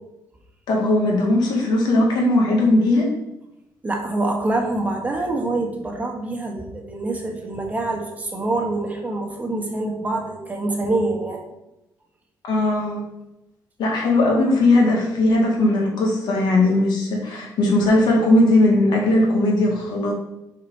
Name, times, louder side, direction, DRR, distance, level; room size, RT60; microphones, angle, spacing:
voice 1, 0.7-3.1 12.4-13.0 13.8-20.1, left 2 dB, 70° left, -1 dB, 1.8 m, -18 dB
voice 2, 3.8-11.5, right 2 dB, 20° right, 1 dB, 1.5 m, -25 dB
4.8 x 4.7 x 5.5 m, 0.90 s
cardioid pair, 95°, 8 cm